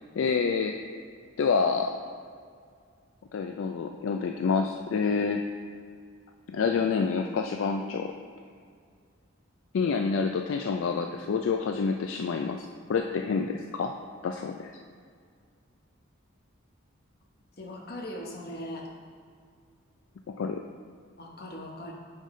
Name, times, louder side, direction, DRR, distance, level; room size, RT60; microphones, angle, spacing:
voice 1, 0.2-0.8 1.4-2.0 3.3-5.4 6.5-8.1 9.7-13.9 14.2-14.7 20.3-20.6, left 5 dB, 65° left, 4 dB, 0.3 m, -28 dB
voice 2, 17.6-18.9 21.2-21.9, left 1 dB, 45° left, 0 dB, 1.0 m, -39 dB
8.9 x 5.5 x 3.2 m, 2.2 s
head